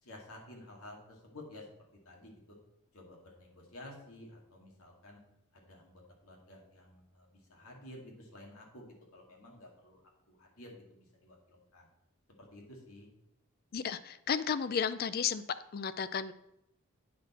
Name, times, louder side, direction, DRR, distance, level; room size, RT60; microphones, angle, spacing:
voice 1, 0.0-2.6 2.9-5.2 5.5-10.0 10.3-11.9 12.4-13.1, left 1 dB, 75° left, 0 dB, 2.0 m, -52 dB
voice 2, 13.7-15.4 15.7-16.3, left 7 dB, 45° left, 14 dB, 0.4 m, -33 dB
8.5 x 6.1 x 4.2 m, 0.82 s
head